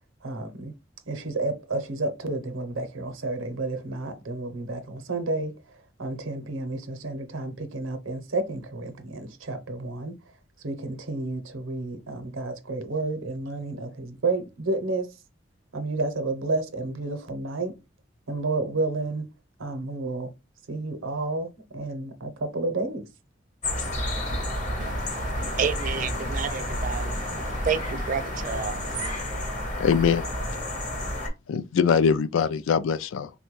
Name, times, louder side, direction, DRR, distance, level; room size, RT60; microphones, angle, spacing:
voice 1, 0.2-0.7 1.1-5.5 6.0-10.1 10.6-15.1 15.7-17.7 18.3-19.3 19.6-20.3 20.7-23.1, right 2 dB, 90° right, 0.7 m, -31 dB
sound 1, 23.6-31.3, left 1 dB, 40° left, 0.9 m, -30 dB
voice 2, 24.8-29.2, right 6 dB, 40° right, 0.3 m, -31 dB
voice 3, 29.8-30.3 31.5-33.3, left 6 dB, 80° left, 0.3 m, -22 dB
3.7 x 2.2 x 3.0 m
head